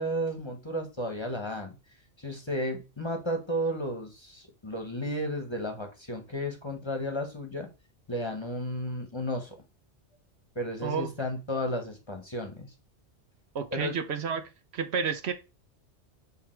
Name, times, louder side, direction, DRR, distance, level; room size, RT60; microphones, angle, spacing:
voice 1, 0.0-1.7 2.2-7.7 8.1-9.6 10.5-12.7 13.7-13.9, equal, 25° left, 1.0 m, -33 dB
voice 2, 13.5-14.4 14.7-15.3, right 6 dB, 65° right, 1.0 m, -30 dB
6.7 x 3.5 x 4.4 m
omnidirectional pair, 1.2 m